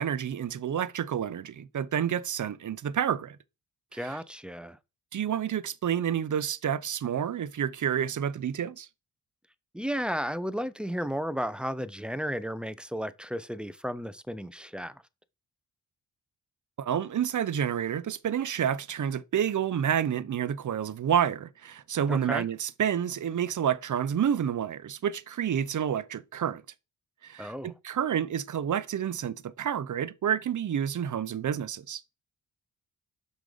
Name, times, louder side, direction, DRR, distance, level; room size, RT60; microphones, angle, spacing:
voice 1, 0.0-3.4 4.0-4.1 5.1-8.9 16.8-26.6 27.2-32.0, right 9 dB, 50° right, 0.7 m, -29 dB
voice 2, 3.9-4.8 9.7-15.0 22.1-22.5 27.4-27.7, equal, 5° right, 0.6 m, -33 dB
6.1 x 5.3 x 5.0 m
cardioid pair, 60°, 39 cm